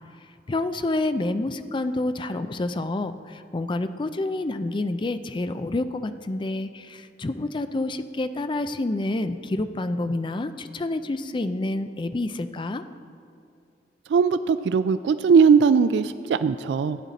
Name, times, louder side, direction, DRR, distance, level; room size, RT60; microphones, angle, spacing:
voice 1, 0.5-12.8, left 2 dB, 25° left, 10 dB, 0.4 m, -28 dB
voice 2, 14.1-17.0, right 5 dB, 70° right, 13 dB, 0.3 m, -19 dB
15.0 x 8.9 x 4.1 m, 2.4 s
head